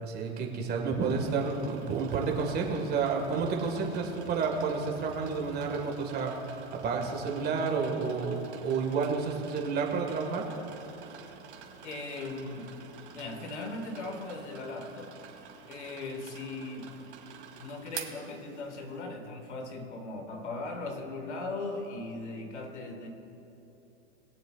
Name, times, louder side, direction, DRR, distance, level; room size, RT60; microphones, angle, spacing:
voice 1, 0.0-6.5 6.7-10.5, right 5 dB, 30° right, 1 dB, 1.9 m, -30 dB
sound 1, 1.0-19.0, right 8 dB, 75° right, 2.1 m, -48 dB
voice 2, 11.8-12.8 13.1-15.2 15.7-17.2 17.6-23.1, left 2 dB, 90° left, 4 dB, 1.9 m, -38 dB
21.5 x 7.7 x 2.5 m, 3.0 s
hypercardioid pair, 125°, 34 cm